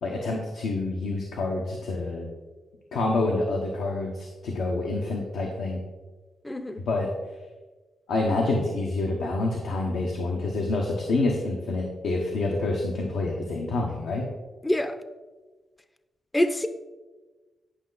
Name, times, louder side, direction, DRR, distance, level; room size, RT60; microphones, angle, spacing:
voice 1, 0.0-2.3 2.9-5.8 6.9-7.1 8.1-14.3, left 2 dB, 85° left, 1.1 m, -27 dB
voice 2, 6.4-6.8 14.6-15.0 16.3-16.7, left 1 dB, 15° left, 0.5 m, -25 dB
10.0 x 5.6 x 4.0 m
cardioid pair, 85°, 0 cm